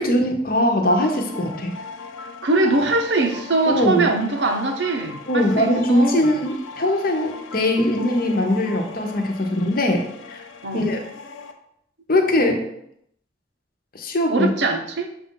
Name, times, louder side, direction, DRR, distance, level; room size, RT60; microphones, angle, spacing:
voice 1, 0.0-1.7 3.7-4.1 5.3-10.0 10.3-10.4 10.7-11.0 12.1-12.6 13.9-14.5, left 1 dB, 50° left, 3 dB, 0.9 m, -21 dB
sound 1, 0.8-11.5, left 4 dB, 90° left, 0.6 m, -38 dB
voice 2, 2.4-6.3 10.6-10.8 14.3-15.1, right 3 dB, 65° right, 5 dB, 0.8 m, -22 dB
6.8 x 2.5 x 5.5 m, 0.74 s
head